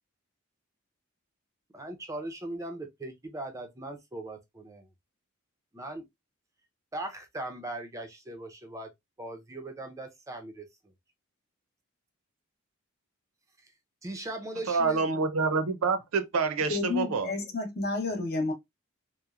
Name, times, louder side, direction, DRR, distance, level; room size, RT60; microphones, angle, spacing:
voice 1, 1.7-4.9 5.7-6.0 6.9-8.9 9.2-10.7 14.0-15.1, right 1 dB, 15° right, 0.4 m, -39 dB
voice 2, 14.7-17.3, right 4 dB, 70° right, 0.5 m, -27 dB
voice 3, 16.7-18.5, left 3 dB, 45° left, 0.7 m, -30 dB
3.0 x 2.0 x 2.3 m
head